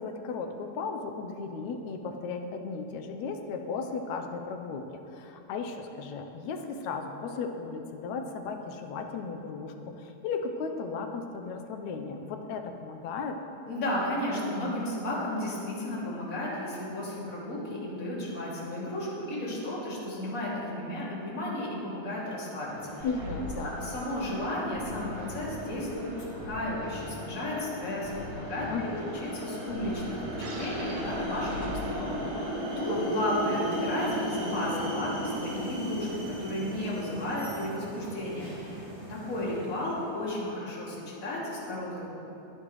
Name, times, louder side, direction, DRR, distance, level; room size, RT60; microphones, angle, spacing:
voice 1, 0.0-13.4 23.0-23.8 28.7-29.1 32.9-33.2, left 4 dB, 75° left, 5 dB, 2.1 m, -36 dB
voice 2, 13.7-23.0 23.6-28.7 29.3-42.1, left 1 dB, 30° left, -6 dB, 2.9 m, -33 dB
sound 1, 22.6-40.1, equal, 20° right, 3.2 m, -37 dB
sound 2, 23.0-32.4, left 1 dB, 65° right, 3.1 m, -42 dB
23.5 x 10.0 x 3.2 m, 3.0 s
omnidirectional pair, 3.4 m